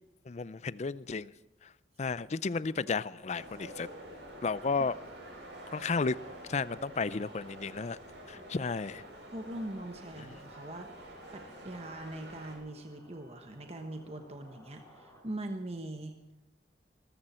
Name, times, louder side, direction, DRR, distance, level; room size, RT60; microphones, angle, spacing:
voice 1, 0.3-1.3 1.6-1.7 2.0-3.9 4.4-5.0 5.7-6.2 6.5-8.0 8.3-9.0, left 4 dB, 40° left, 18 dB, 0.4 m, -33 dB
sound 1, 2.6-15.2, left 1 dB, 15° left, 5.0 m, -59 dB
sound 2, 3.3-12.6, right 1 dB, 85° right, 6.7 m, -48 dB
voice 2, 9.3-16.2, right 1 dB, 35° right, 5 dB, 1.2 m, -42 dB
19.5 x 14.0 x 4.4 m, 1.1 s
head